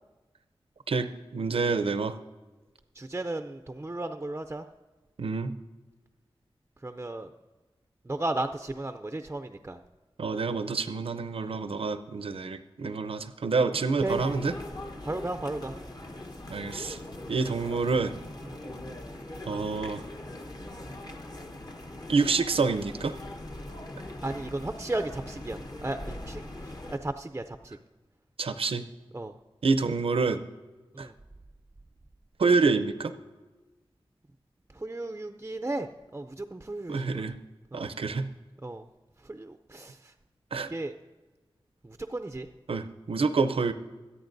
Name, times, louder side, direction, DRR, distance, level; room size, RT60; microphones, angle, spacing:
voice 1, 0.9-2.2 5.2-5.5 10.2-14.5 16.5-17.0 17.3-18.2 19.5-20.0 22.1-23.2 28.4-28.8 29.6-30.4 31.0-31.1 32.4-33.1 36.9-37.3 37.7-38.3 40.5-40.7 42.7-43.7, right 4 dB, 80° right, 10 dB, 0.6 m, -27 dB
voice 2, 3.0-4.6 6.8-7.3 8.1-9.8 14.0-14.2 15.0-15.8 18.5-18.6 24.2-26.4 26.9-27.8 29.1-29.3 30.9-31.1 34.7-35.9 36.1-37.2 37.7-37.9 38.6-38.8 39.2-40.1 40.6-40.9 41.8-42.5, right 2 dB, 25° right, 8 dB, 0.4 m, -34 dB
sound 1, 14.1-27.0, left 1 dB, 45° left, 1.1 m, -41 dB
25.0 x 8.7 x 2.6 m, 1.2 s
wide cardioid pair, 100°, 9 cm